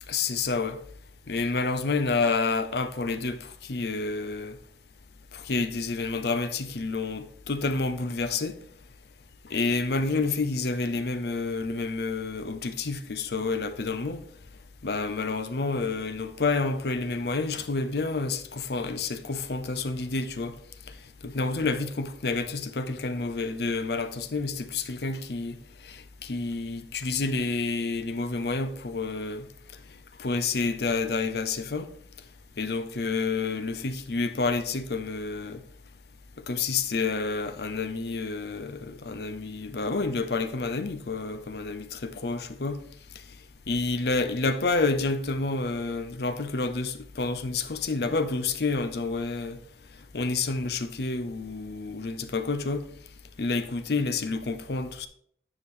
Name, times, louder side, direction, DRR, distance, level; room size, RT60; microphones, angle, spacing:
voice 1, 0.1-0.8 1.3-4.6 5.3-8.6 9.5-14.2 14.8-20.6 21.2-25.6 25.8-29.5 30.2-31.9 32.6-35.6 36.5-42.8 43.7-49.6 50.1-52.9 53.4-55.1, left 3 dB, 60° left, 0.6 m, -29 dB
9.6 x 4.9 x 3.6 m
head